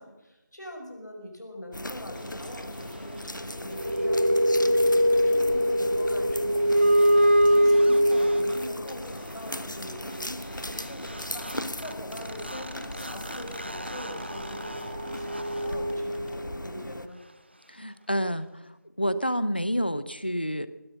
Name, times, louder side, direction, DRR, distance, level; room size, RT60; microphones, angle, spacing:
voice 1, 0.0-17.2, left 1 dB, 65° left, 3 dB, 5.7 m, -43 dB
sound 1, 1.7-17.1, left 1 dB, 85° left, 1.2 m, -38 dB
sound 2, 3.5-8.9 10.8-10.9 11.1-16.6, equal, 35° right, 0.8 m, -24 dB
voice 2, 17.7-18.5 19.0-20.7, equal, 30° left, 15 dB, 0.7 m, -28 dB
20.5 x 11.0 x 6.2 m, 1.0 s
figure-of-eight pair, 175°, 10 cm